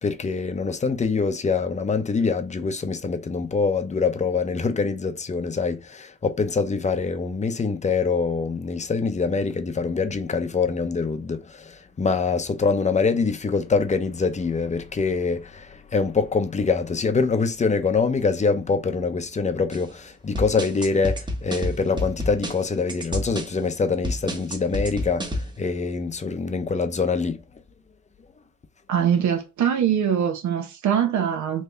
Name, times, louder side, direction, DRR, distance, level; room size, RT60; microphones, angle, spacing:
voice 1, 0.0-27.4, left 4 dB, 25° left, 0.6 m, -24 dB
sound 1, 19.7-19.9 20.4-23.5 24.0-25.5, left 1 dB, 15° right, 1.0 m, -29 dB
voice 2, 28.9-31.6, right 8 dB, 70° right, 0.8 m, -22 dB
3.4 x 2.7 x 3.3 m
cardioid pair, 90°, 30 cm